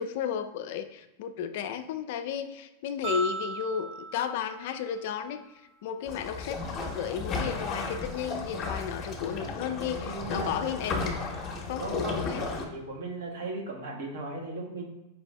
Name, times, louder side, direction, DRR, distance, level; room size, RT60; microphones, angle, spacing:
voice 1, 0.0-5.4 5.8-6.6 6.9-11.2 11.7-12.4, left 8 dB, 60° left, 9 dB, 0.3 m, -33 dB
sound 1, 3.0-5.4, right 4 dB, 15° right, 0.9 m, -37 dB
sound 2, 6.1-12.7, left 3 dB, 30° left, 0.8 m, -34 dB
voice 2, 10.0-10.8 11.8-14.9, right 2 dB, 65° right, 0 dB, 1.0 m, -37 dB
4.6 x 2.5 x 3.2 m, 0.98 s
hypercardioid pair, 95°, 0 cm